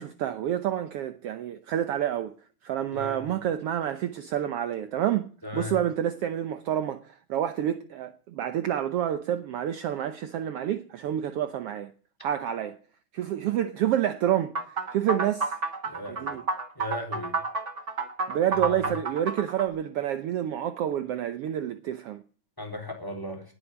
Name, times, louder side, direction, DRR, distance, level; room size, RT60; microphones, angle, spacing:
voice 1, 0.0-2.3 2.6-11.9 12.2-12.8 13.1-15.5 16.1-16.5 18.3-22.2, right 11 dB, 75° right, 1.3 m, -28 dB
voice 2, 2.9-3.2 5.4-5.7 15.9-16.4 16.8-17.3 18.7-18.8 22.6-23.4, left 2 dB, 5° left, 3.5 m, -36 dB
sound 1, 14.5-19.7, right 3 dB, 35° right, 1.2 m, -30 dB
19.5 x 8.3 x 7.2 m
omnidirectional pair, 3.7 m